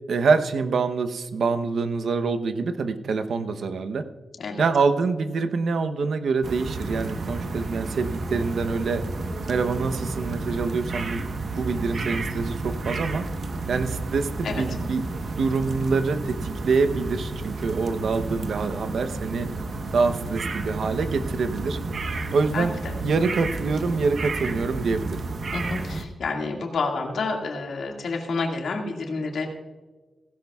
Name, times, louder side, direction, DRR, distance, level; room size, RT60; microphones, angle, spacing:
voice 1, 0.1-4.0 4.6-9.0 9.5-11.2 11.6-13.2 13.7-15.1 15.4-19.5 19.9-21.8 22.3-22.7 23.0-25.2, right 4 dB, 75° right, 9 dB, 0.8 m, -25 dB
sound 1, 6.4-26.1, right 3 dB, 55° right, 1.1 m, -31 dB
voice 2, 22.5-22.9 25.5-29.5, left 3 dB, 85° left, 1 dB, 2.0 m, -29 dB
16.5 x 16.0 x 2.3 m, 1.2 s
wide cardioid pair, 135°, 0 cm